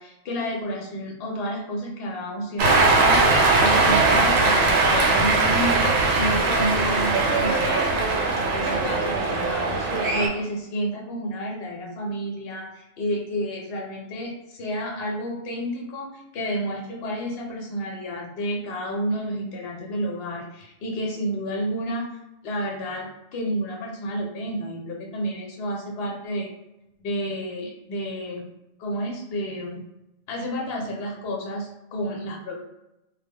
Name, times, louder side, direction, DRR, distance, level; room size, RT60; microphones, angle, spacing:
voice 1, 0.0-5.8 6.1-22.1 22.4-26.5 27.0-28.4 28.8-29.9 30.3-32.6, equal, 60° left, -1 dB, 0.7 m, -30 dB
Cheering, 2.6-10.3, right 3 dB, 80° right, 1.0 m, -20 dB
2.2 x 2.1 x 3.4 m, 0.89 s
omnidirectional pair, 1.4 m